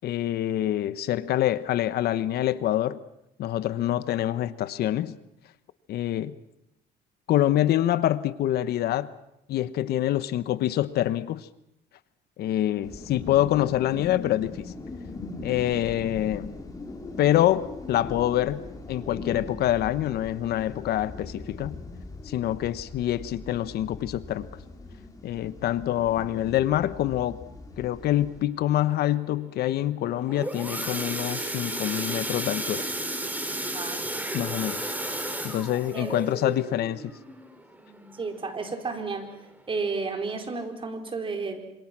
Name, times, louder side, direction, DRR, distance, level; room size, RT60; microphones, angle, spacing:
voice 1, 0.0-3.0 3.4-5.1 5.9-6.3 7.3-9.1 9.5-11.5 12.4-14.7 15.4-16.5 17.2-18.6 18.9-21.7 22.3-24.5 25.2-27.4 27.8-32.8 34.3-34.9 35.4-37.0, left 13 dB, 70° left, 15 dB, 1.1 m, -26 dB
sound 1, 12.8-28.4, left 3 dB, 20° left, 4.6 m, -40 dB
sound 2, 30.1-38.7 39.2-39.4 39.7-39.8 40.3-40.4, right 1 dB, 10° right, 3.8 m, -33 dB
voice 2, 38.1-39.3 39.7-41.6, right 4 dB, 30° right, 5 dB, 4.5 m, -32 dB
27.0 x 27.0 x 6.1 m, 0.82 s
cardioid pair, 110°, 17 cm